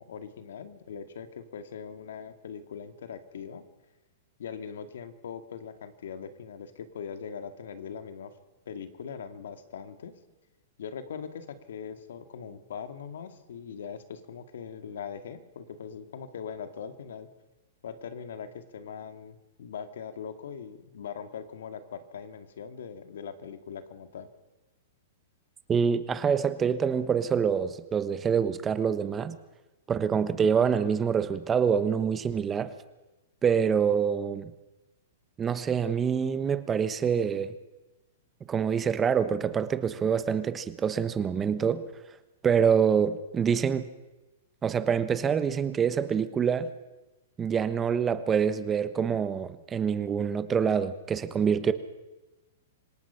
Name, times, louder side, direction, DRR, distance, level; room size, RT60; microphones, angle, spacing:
voice 1, 0.0-3.6 4.4-8.3 8.7-10.1 10.8-17.3 17.8-24.3, left 7 dB, 75° left, 9 dB, 2.1 m, -41 dB
voice 2, 25.7-29.4 29.9-32.7 33.4-34.5 35.4-37.5 38.5-41.8 42.4-43.8 44.6-46.7 47.4-51.7, right 7 dB, 20° right, 13 dB, 1.1 m, -26 dB
26.5 x 18.0 x 5.8 m, 1.1 s
hypercardioid pair, 140°, 0 cm